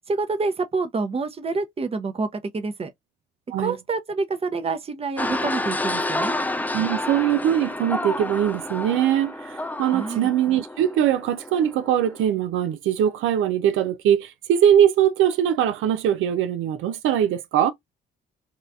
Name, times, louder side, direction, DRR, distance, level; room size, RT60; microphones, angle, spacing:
voice 1, 0.1-2.3 2.5-2.9 3.6-6.4 9.9-10.3, right 3 dB, 30° right, 0.8 m, -27 dB
sound 1, 5.2-12.2, left 2 dB, 10° left, 0.4 m, -30 dB
voice 2, 6.7-17.7, right 10 dB, 80° right, 0.5 m, -21 dB
2.8 x 2.4 x 3.3 m
cardioid pair, 90°, 20 cm